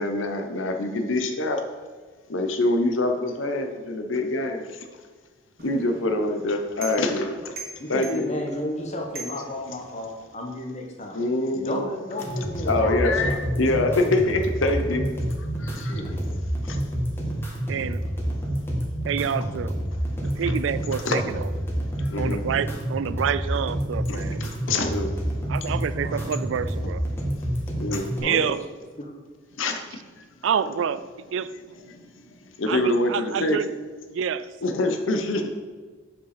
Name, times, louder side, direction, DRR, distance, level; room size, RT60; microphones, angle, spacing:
voice 1, 0.0-1.6 2.3-4.7 5.6-7.5 7.9-8.3 11.1-11.9 12.7-15.0 15.6-16.0 16.7-16.8 21.0-21.2 22.1-22.4 24.1-25.1 27.8-28.1 29.6-29.8 32.6-33.6 34.6-35.5, left 2 dB, 85° left, 0.9 m, -25 dB
sound 1, 5.6-10.3, right 2 dB, 55° right, 1.5 m, -43 dB
voice 2, 7.8-11.2 11.5-13.3 15.8-16.2 25.9-26.2 28.2-28.5 29.0-29.1, left 1 dB, 35° left, 1.3 m, -33 dB
sound 2, 12.2-28.2, equal, 10° left, 1.6 m, -28 dB
voice 3, 17.7-18.1 19.1-19.8 20.2-21.6 22.2-24.5 25.5-27.1 28.2-28.7 30.4-31.5 32.7-33.7 34.1-34.5, right 7 dB, 70° right, 0.3 m, -28 dB
7.7 x 5.3 x 5.0 m
head